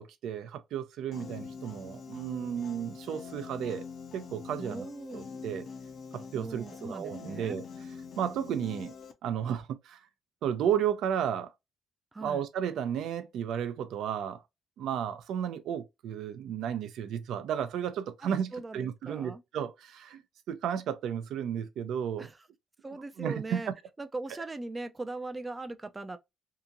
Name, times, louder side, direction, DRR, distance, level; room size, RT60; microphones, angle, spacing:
voice 1, 0.0-3.8 4.1-4.9 5.1-5.7 6.1-7.6 8.2-8.9 9.2-10.1 10.4-11.5 12.2-14.4 14.8-20.2 20.5-22.3 23.2-23.6, right 9 dB, 80° right, 0.5 m, -33 dB
Piano, 1.1-9.1, left 5 dB, 60° left, 0.5 m, -44 dB
voice 2, 4.6-5.2 6.3-7.6 12.1-12.5 18.2-19.4 22.2-22.5 22.8-26.2, right 2 dB, 20° right, 0.3 m, -40 dB
2.8 x 2.4 x 2.6 m
cardioid pair, 90°, 0 cm